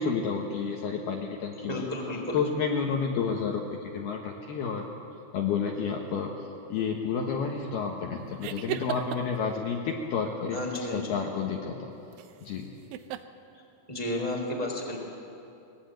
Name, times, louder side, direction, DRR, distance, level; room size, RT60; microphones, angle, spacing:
voice 1, 0.0-1.8 2.3-4.8 5.3-6.3 6.7-10.6 10.9-11.9 12.4-12.7, left 6 dB, 65° left, 1 dB, 2.8 m, -30 dB
voice 2, 1.6-2.4 10.5-11.1 13.9-15.0, left 1 dB, 10° right, -1 dB, 2.6 m, -32 dB
sound 1, 8.4-9.4 12.1-12.5 12.9-13.2, right 13 dB, 80° right, 3.0 m, -35 dB
22.5 x 20.0 x 9.1 m, 2.8 s
omnidirectional pair, 5.8 m